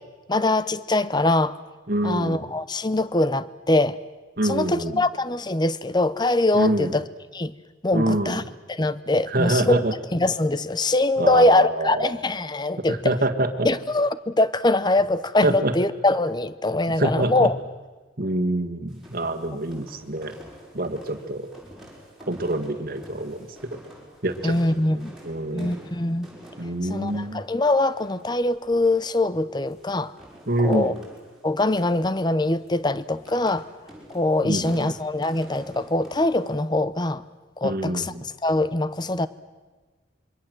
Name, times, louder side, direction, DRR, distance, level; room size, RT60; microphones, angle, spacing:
voice 1, 0.3-1.6 2.0-4.0 4.4-7.0 7.3-7.5 7.8-8.4 8.7-9.8 10.1-13.1 13.6-17.6 24.4-25.1 25.5-26.3 26.8-30.1 30.6-30.9 31.4-33.7 34.1-37.2 37.6-39.3, left 2 dB, 20° left, 15 dB, 0.7 m, -23 dB
voice 2, 1.9-2.5 4.4-5.0 6.5-6.9 7.9-8.4 9.3-9.9 11.2-12.1 12.9-13.7 15.4-15.7 17.0-17.5 18.2-20.3 20.7-21.5 22.3-23.8 24.2-24.6 25.2-25.8 26.6-27.4 30.5-30.9 34.4-34.9 37.6-38.2, right 1 dB, 50° right, 5 dB, 1.9 m, -25 dB
sound 1, 18.9-36.6, equal, ahead, 6.7 m, -48 dB
27.0 x 23.0 x 7.8 m, 1.3 s
head